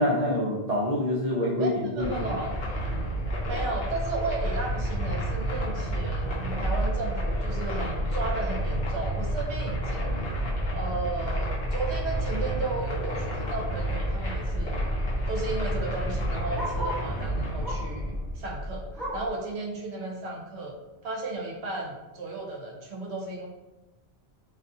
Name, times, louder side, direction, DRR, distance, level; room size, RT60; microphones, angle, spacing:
voice 1, 0.0-1.7 2.0-2.3, left 1 dB, 50° right, -5 dB, 0.5 m, -26 dB
voice 2, 1.6-2.5 3.4-10.2 10.7-14.8 15.3-20.8 21.0-23.5, right 2 dB, 75° right, 0 dB, 0.9 m, -34 dB
sound 1, 2.0-19.3, equal, 50° left, 0.7 m, -30 dB
Bark, 15.7-17.1 17.6-18.0 18.4-19.4 19.8-19.9 20.3-20.4 21.1-21.2, equal, ahead, 1.0 m, -37 dB
2.4 x 2.3 x 2.6 m, 1.0 s
omnidirectional pair, 1.1 m